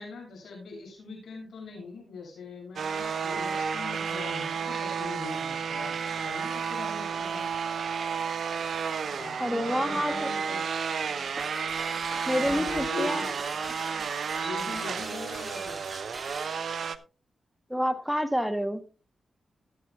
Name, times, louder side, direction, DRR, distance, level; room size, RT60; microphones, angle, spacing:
voice 1, 0.0-5.9 6.2-7.5 9.2-10.7 12.3-13.3 14.4-15.8, left 4 dB, 80° left, 0 dB, 6.9 m, -41 dB
sound 1, 2.8-17.0, right 6 dB, 70° right, 0.7 m, -32 dB
voice 2, 9.4-10.3 12.3-13.3 17.7-18.8, equal, ahead, 9 dB, 1.1 m, -28 dB
sound 2, 11.4-16.6, right 2 dB, 25° right, 1.5 m, -42 dB
19.5 x 8.5 x 2.3 m, 0.33 s
cardioid pair, 50°, 0 cm